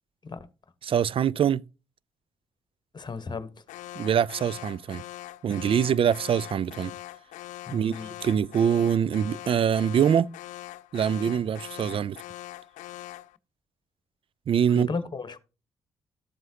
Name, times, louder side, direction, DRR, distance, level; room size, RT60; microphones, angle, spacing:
voice 1, 0.8-1.6 3.9-5.0 5.4-6.9 7.7-10.3 10.9-12.2 14.5-14.9, right 8 dB, 40° right, 0.4 m, -24 dB
voice 2, 2.9-3.5 7.7-8.1 14.7-15.4, left 4 dB, 30° left, 1.3 m, -34 dB
Alarm, 3.7-13.4, left 15 dB, 65° left, 0.4 m, -42 dB
13.0 x 7.6 x 2.9 m
figure-of-eight pair, 40°, 14 cm